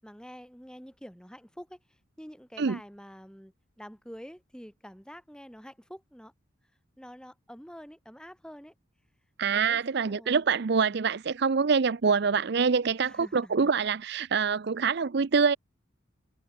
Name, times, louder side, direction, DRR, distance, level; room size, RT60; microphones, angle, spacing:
voice 1, 0.0-6.3 7.0-8.7 9.5-11.0 13.0-13.7 14.3-14.5, equal, 5° left, 4.9 m, -47 dB
voice 2, 9.4-15.6, right 5 dB, 55° right, 0.5 m, -25 dB
head